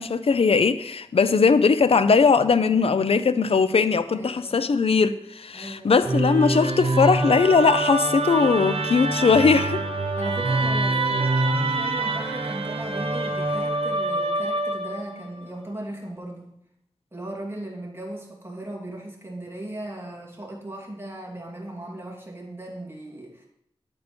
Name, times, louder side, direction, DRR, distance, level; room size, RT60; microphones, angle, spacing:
voice 1, 0.0-9.8, left 5 dB, 65° left, 0.5 m, -20 dB
voice 2, 4.1-4.6 5.5-6.1 10.2-16.5 17.1-23.5, right 1 dB, 25° right, 2.7 m, -37 dB
Musical instrument, 6.0-15.2, right 2 dB, 65° right, 1.1 m, -25 dB
9.8 x 8.7 x 4.4 m
wide cardioid pair, 90°, 10 cm